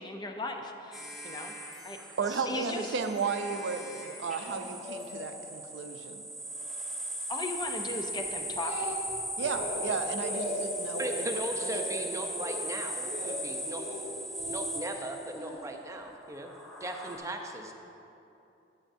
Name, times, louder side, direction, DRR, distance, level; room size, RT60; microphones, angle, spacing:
voice 1, 0.0-1.5 1.8-2.0 2.5-2.9 7.3-9.0, left 2 dB, 25° left, 4 dB, 0.5 m, -37 dB
sound 1, 0.9-15.5 16.1-17.2, equal, ahead, 1.1 m, -38 dB
voice 2, 2.2-6.2 9.4-11.8, right 5 dB, 75° right, 7 dB, 0.5 m, -34 dB
Speech, 8.1-9.1 9.4-9.8 10.2-10.5 10.9-11.2 11.6-11.9 12.3-12.6 13.0-13.4 13.8-14.6 15.3-15.6, equal, 60° left, 1.9 m, -38 dB
voice 3, 11.0-13.8 14.5-16.5 16.8-17.7, right 1 dB, 15° right, 3 dB, 0.6 m, -38 dB
11.0 x 8.1 x 2.7 m, 2.8 s
head